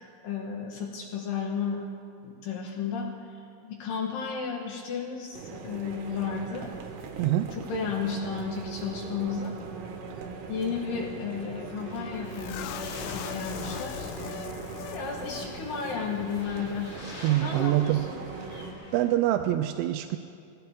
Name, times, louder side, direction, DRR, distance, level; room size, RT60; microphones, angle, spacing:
voice 1, 0.0-1.8 2.2-6.7 7.4-9.6 10.5-14.1 14.9-17.0 17.4-18.2, left 6 dB, 70° left, 0 dB, 2.1 m, -33 dB
sound 1, 5.3-18.7, right 5 dB, 70° right, 2.8 m, -40 dB
sound 2, 11.8-19.1, left 1 dB, 45° left, 3.7 m, -47 dB
sound 3, 12.3-15.5 15.8-15.9 16.3-16.4, left 11 dB, 90° left, 3.2 m, -39 dB
voice 2, 17.2-18.0 18.9-20.2, right 14 dB, 90° right, 6 dB, 3.1 m, -25 dB
20.5 x 16.0 x 3.5 m, 2.3 s
omnidirectional pair, 5.6 m